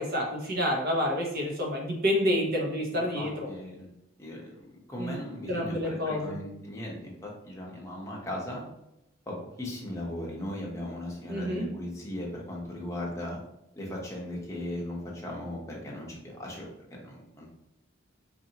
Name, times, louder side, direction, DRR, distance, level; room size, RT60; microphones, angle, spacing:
voice 1, 0.0-3.5 5.0-5.2 5.5-6.4 11.3-11.7, equal, 50° right, -2 dB, 1.0 m, -28 dB
voice 2, 2.9-3.9 4.2-8.6 9.3-13.4 13.7-17.5, left 1 dB, 15° left, -3 dB, 0.8 m, -38 dB
4.2 x 2.7 x 2.8 m, 0.85 s
head